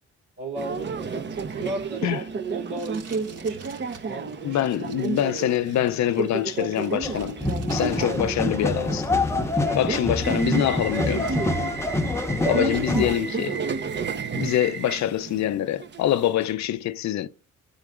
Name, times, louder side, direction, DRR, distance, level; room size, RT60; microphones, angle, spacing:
voice 1, 0.4-2.2 2.5-3.6 4.0-4.7 5.0-5.2 7.9-8.0 9.6-9.8 11.9-12.2, right 3 dB, 80° right, 2.7 m, -35 dB
Subway metro underground, 0.6-16.5, right 5 dB, 35° right, 0.8 m, -32 dB
Packing tape duct tape, 1.2-8.4 8.6-9.7 10.1-10.2 10.6-11.7 12.1-12.9 13.3-13.7, right 4 dB, 55° right, 2.2 m, -49 dB
voice 2, 4.4-7.4 7.7-9.1 9.7-11.3 12.4-13.6 14.3-17.3, left 12 dB, 65° left, 0.6 m, -25 dB
sound 1, 7.0-13.1, left 2 dB, 10° left, 0.8 m, -26 dB
11.0 x 3.9 x 3.6 m
cardioid pair, 90°, 30 cm